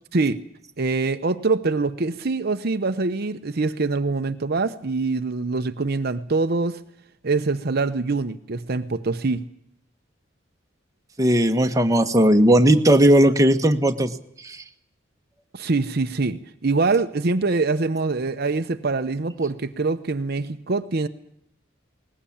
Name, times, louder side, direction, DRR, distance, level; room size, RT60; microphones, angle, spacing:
voice 1, 0.8-6.8 7.2-9.4 15.5-21.1, right 3 dB, 55° right, 8 dB, 0.8 m, -24 dB
voice 2, 11.2-14.1 14.4-14.6, right 1 dB, 20° right, 5 dB, 1.3 m, -17 dB
20.5 x 19.0 x 8.7 m, 0.75 s
head